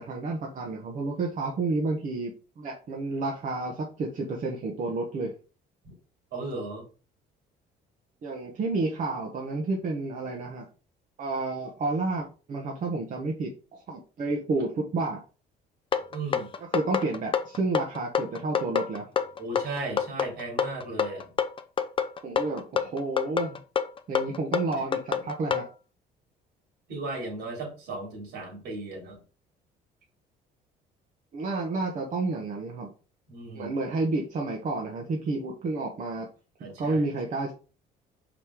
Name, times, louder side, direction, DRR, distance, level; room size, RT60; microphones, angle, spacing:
voice 1, 0.0-5.3 8.2-10.7 11.2-15.2 16.7-19.1 22.2-23.6 24.1-25.6 31.3-32.9 33.5-36.3 36.8-37.5, right 3 dB, 50° right, -1 dB, 1.4 m, -30 dB
voice 2, 6.3-6.9 16.1-16.5 19.4-21.3 26.9-29.2 33.3-33.7 36.6-37.0, right 2 dB, 80° right, 1 dB, 3.6 m, -36 dB
sound 1, 15.9-25.7, left 7 dB, 30° left, 0.6 m, -27 dB
5.4 x 5.1 x 3.6 m, 0.35 s
cardioid pair, 110°, 17 cm